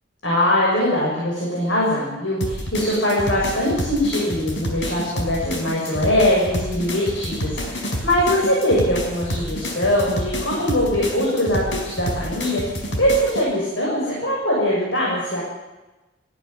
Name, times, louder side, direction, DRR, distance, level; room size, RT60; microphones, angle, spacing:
voice 1, 0.2-15.4, left 1 dB, 85° left, -4 dB, 6.9 m, -22 dB
sound 1, 2.4-13.4, equal, 70° left, 4.6 m, -29 dB
19.0 x 16.0 x 9.6 m, 1.1 s
head